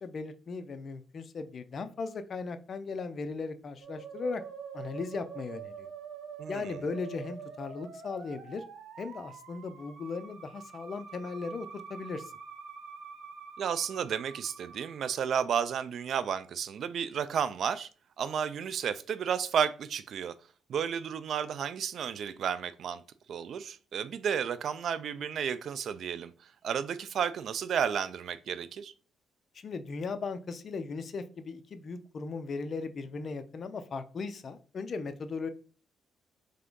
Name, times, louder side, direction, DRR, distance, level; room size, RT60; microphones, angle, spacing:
voice 1, 0.0-4.4 4.7-5.9 6.5-8.6 9.0-12.3 29.5-35.5, left 4 dB, 50° left, 0.5 m, -37 dB
Musical instrument, 3.8-15.6, right 6 dB, 80° right, 1.0 m, -46 dB
voice 2, 6.4-6.8 13.6-17.9 18.2-20.3 20.7-23.0 23.3-28.9, right 8 dB, 65° right, 0.4 m, -32 dB
3.7 x 3.4 x 3.7 m
cardioid pair, 90°, 0 cm